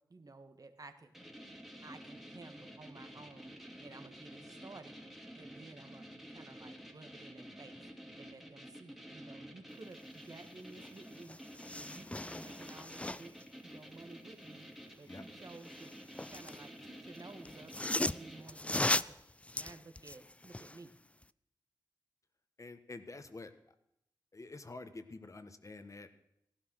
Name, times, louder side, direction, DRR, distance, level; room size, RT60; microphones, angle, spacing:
voice 1, 0.1-1.1 1.8-5.0 5.4-7.9 8.1-11.4 11.7-13.3 13.6-14.7 15.0-15.9 16.3-19.2 19.5-20.9, right 3 dB, 50° right, 8 dB, 1.7 m, -54 dB
sound 1, 1.1-18.9, equal, 5° right, 2.5 m, -51 dB
sound 2, 10.8-10.9 11.2-13.4 15.6-16.6 17.4-20.8 21.2-21.3, left 2 dB, 15° left, 0.4 m, -37 dB
voice 2, 22.6-23.5 24.3-26.1, left 3 dB, 40° left, 10 dB, 1.4 m, -48 dB
15.5 x 11.5 x 6.3 m, 0.79 s
cardioid pair, 50°, 8 cm